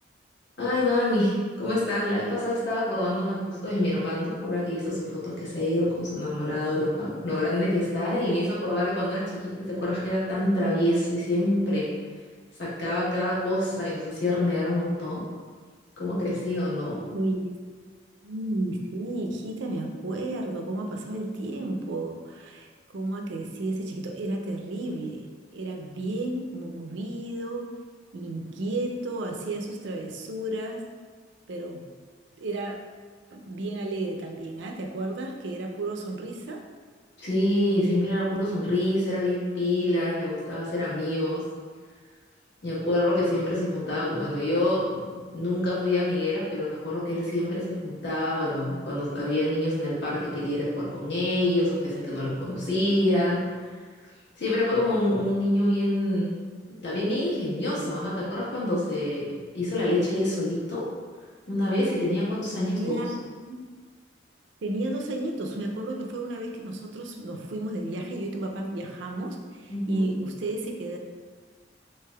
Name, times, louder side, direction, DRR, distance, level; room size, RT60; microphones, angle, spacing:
voice 1, 0.6-11.9 12.6-15.2 16.0-17.0 37.2-41.4 42.6-45.0 45.3-53.7 54.4-56.3 56.8-60.9 61.5-63.0 69.7-70.1, left 1 dB, 65° left, -8 dB, 1.1 m, -26 dB
voice 2, 17.1-17.6 18.2-27.7 28.1-30.8 31.5-31.9 32.4-32.8 33.3-36.6 62.7-63.6 64.6-71.0, right 2 dB, 70° right, 2 dB, 0.4 m, -32 dB
3.3 x 3.2 x 2.2 m, 1.5 s
head